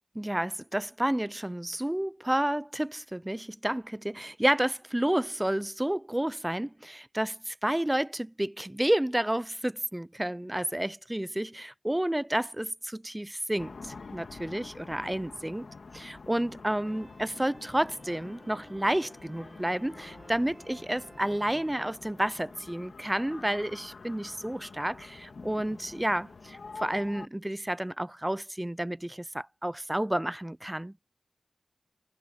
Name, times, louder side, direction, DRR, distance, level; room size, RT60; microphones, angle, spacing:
voice 1, 0.2-15.7 15.9-30.9, right 1 dB, 15° right, 0.3 m, -30 dB
sound 1, 13.6-27.3, left 4 dB, 80° left, 2.3 m, -47 dB
sound 2, 16.8-21.9, right 2 dB, 35° right, 2.0 m, -54 dB
cardioid pair, 50°, 0 cm